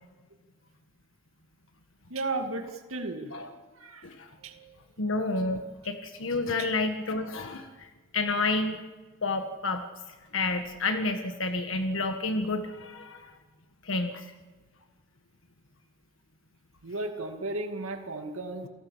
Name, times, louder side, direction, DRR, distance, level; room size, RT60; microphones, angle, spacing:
voice 1, 2.1-3.3 3.7-4.1 4.4-4.7 6.6-6.7 16.8-18.7, right 2 dB, 75° right, 4 dB, 2.3 m, -34 dB
voice 2, 5.0-7.9 8.1-8.8 9.2-9.8 10.3-13.3 13.8-14.3, left 3 dB, 65° left, 6 dB, 1.6 m, -30 dB
29.0 x 18.0 x 7.1 m, 1.3 s
head